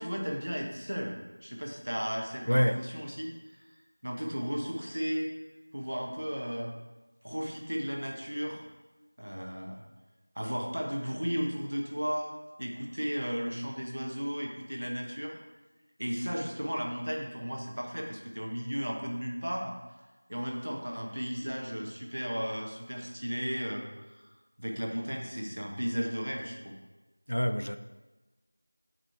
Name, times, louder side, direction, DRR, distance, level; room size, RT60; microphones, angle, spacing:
voice 1, 0.0-3.6 4.0-5.3 5.7-6.7 7.2-8.6 9.2-9.8 10.3-12.3 12.6-15.4 16.0-19.8 20.3-24.2 24.6-26.7, equal, 35° right, 0 dB, 0.9 m, -35 dB
voice 2, 2.5-2.8 27.3-27.8, equal, 70° left, 9 dB, 0.5 m, -26 dB
8.8 x 3.1 x 5.8 m, 1.2 s
figure-of-eight pair, 180°, 0 cm